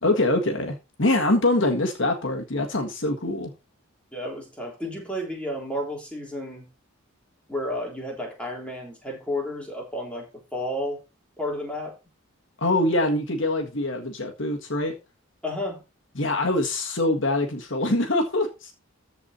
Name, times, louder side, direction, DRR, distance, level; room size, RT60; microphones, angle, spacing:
voice 1, 0.0-3.5 12.6-14.9 16.1-18.7, left 2 dB, 60° left, 1.7 m, -24 dB
voice 2, 4.1-6.7 7.5-10.3 10.5-11.0 11.4-12.0 15.4-15.8, left 1 dB, 5° left, 3.4 m, -31 dB
14.0 x 4.8 x 4.2 m
head